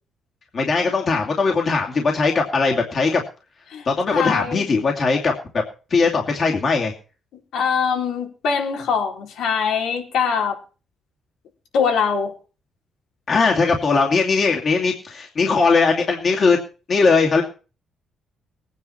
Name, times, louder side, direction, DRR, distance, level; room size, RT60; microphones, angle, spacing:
voice 1, 0.5-3.2 3.9-5.3 5.9-6.9 13.3-16.6 16.9-17.4, left 4 dB, 35° left, 0 dB, 2.6 m, -19 dB
voice 2, 4.1-4.7 7.5-10.6 11.7-12.3, left 6 dB, 75° left, 1 dB, 4.2 m, -22 dB
20.5 x 9.7 x 4.5 m, 0.36 s
cardioid pair, 140°, 0 cm